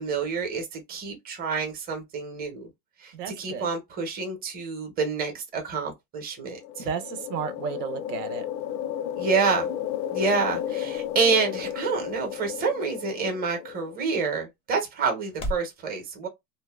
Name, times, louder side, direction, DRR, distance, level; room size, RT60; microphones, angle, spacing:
voice 1, 0.0-2.7 3.0-6.9 9.2-9.7 10.1-16.3, right 5 dB, 20° right, 0.7 m, -28 dB
voice 2, 3.1-3.7 6.8-8.5, right 7 dB, 70° right, 0.7 m, -33 dB
sound 1, 6.4-14.1, left 10 dB, 85° left, 0.6 m, -33 dB
sound 2, 9.5-15.8, equal, 15° left, 0.4 m, -43 dB
2.6 x 2.1 x 2.2 m
supercardioid pair, 140°, 49 cm